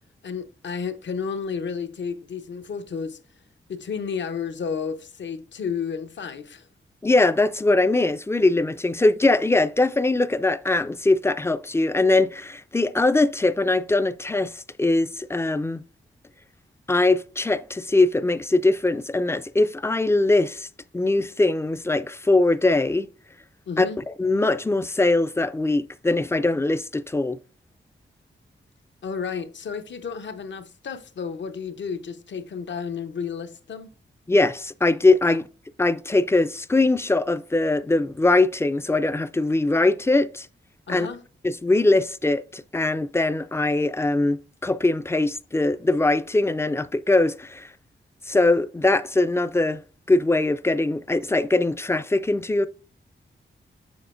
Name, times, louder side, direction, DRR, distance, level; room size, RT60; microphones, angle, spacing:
voice 1, 0.2-3.2 3.7-6.7 23.7-24.0 29.0-33.9 35.3-35.4 40.9-41.2, left 6 dB, 65° left, 0.8 m, -32 dB
voice 2, 7.0-15.8 16.9-20.7 20.9-23.1 23.8-23.9 24.2-27.4 34.3-35.4 35.8-40.5 40.9-41.1 41.4-47.7 48.3-49.8 50.1-52.7, left 2 dB, 15° left, 0.3 m, -21 dB
7.1 x 6.7 x 2.5 m
wide cardioid pair, 100°, 20 cm